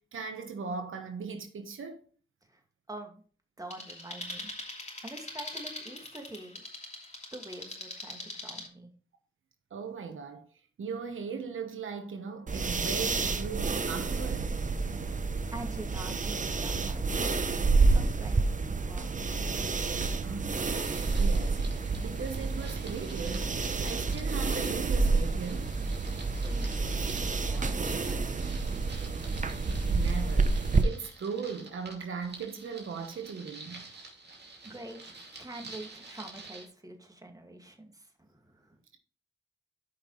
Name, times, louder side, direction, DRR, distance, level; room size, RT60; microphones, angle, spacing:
voice 1, 0.1-2.1 9.7-10.5 10.8-14.5 19.9-25.8 29.9-33.9 34.7-34.8 35.6-35.7, right 5 dB, 85° right, 1.2 m, -39 dB
voice 2, 2.9-3.2 3.6-4.5 5.0-6.6 7.3-8.9 15.5-17.3 17.9-19.1 26.1-28.6 33.9-34.1 34.6-38.8, right 1 dB, 15° right, 2.2 m, -46 dB
sound 1, 3.7-8.7, left 2 dB, 35° left, 2.6 m, -42 dB
sound 2, 12.5-30.8, right 3 dB, 40° right, 0.8 m, -29 dB
sound 3, 20.5-36.7, right 3 dB, 55° right, 2.6 m, -49 dB
12.5 x 5.6 x 3.2 m
cardioid pair, 65°, 20 cm